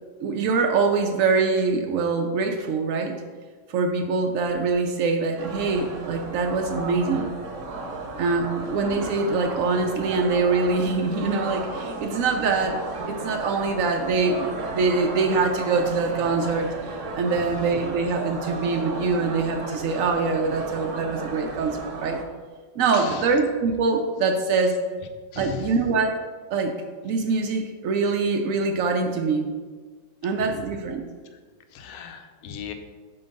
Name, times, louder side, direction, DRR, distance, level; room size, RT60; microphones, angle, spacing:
voice 1, 0.2-3.2 3.7-7.3 8.2-16.7 17.1-22.2 22.8-24.8 25.4-26.2 26.5-26.8 27.0-29.5 30.2-31.0, right 4 dB, 80° right, 3 dB, 0.7 m, -24 dB
sound 1, 5.4-22.2, right 3 dB, 55° right, 0.9 m, -34 dB
voice 2, 22.9-23.3 25.3-25.6 31.7-32.7, left 8 dB, 75° left, 5 dB, 0.8 m, -37 dB
5.7 x 3.8 x 5.3 m, 1.5 s
omnidirectional pair, 2.1 m